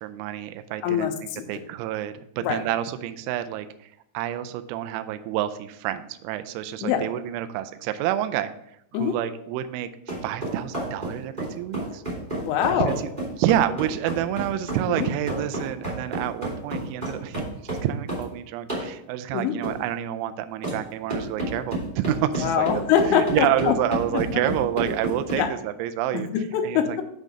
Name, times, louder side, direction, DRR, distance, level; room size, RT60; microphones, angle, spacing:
voice 1, 0.0-1.1 1.5-3.7 4.1-8.5 9.0-9.9 10.2-12.0 12.7-13.1 13.4-22.8 23.1-26.3 26.6-26.8, right 12 dB, 85° right, 10 dB, 2.8 m, -28 dB
voice 2, 0.8-1.5 2.4-2.6 6.8-7.1 8.9-9.2 12.4-13.0 14.9-15.1 19.3-19.6 22.4-23.7 25.4-25.5 26.1-27.0, left 8 dB, 85° left, 5 dB, 3.2 m, -23 dB
sound 1, 10.1-18.3 18.7-18.9 19.6-19.8 20.6-20.8 21.1-25.4, right 2 dB, 20° right, 1.2 m, -30 dB
8.5 x 3.9 x 5.0 m, 0.75 s
omnidirectional pair, 5.7 m